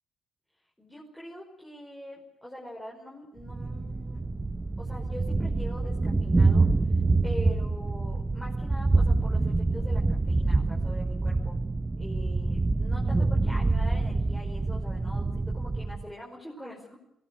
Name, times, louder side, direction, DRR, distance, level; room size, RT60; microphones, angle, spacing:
voice 1, 0.8-4.3 4.8-6.7 7.2-11.6 12.0-17.0, left 1 dB, 5° left, -2 dB, 5.3 m, -43 dB
Thunder, 3.4-16.1, right 3 dB, 20° right, 1.0 m, -26 dB
22.5 x 18.5 x 8.3 m, 0.83 s
cardioid pair, 90°, 0 cm